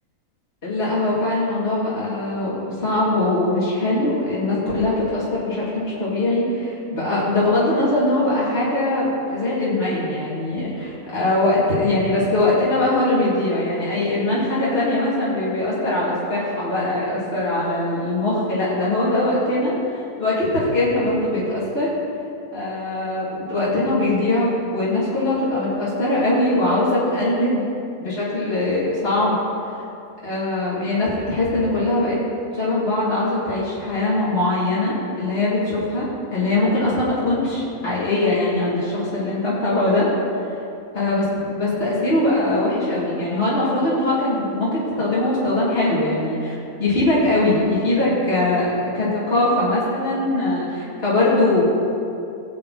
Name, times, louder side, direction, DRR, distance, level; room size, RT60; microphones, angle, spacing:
voice 1, 0.6-21.9 22.5-27.7 28.0-29.4 30.2-32.2 32.5-40.1 40.9-51.6, left 2 dB, 40° left, -9 dB, 3.5 m, -21 dB
20.5 x 7.7 x 4.4 m, 2.6 s
omnidirectional pair, 1.6 m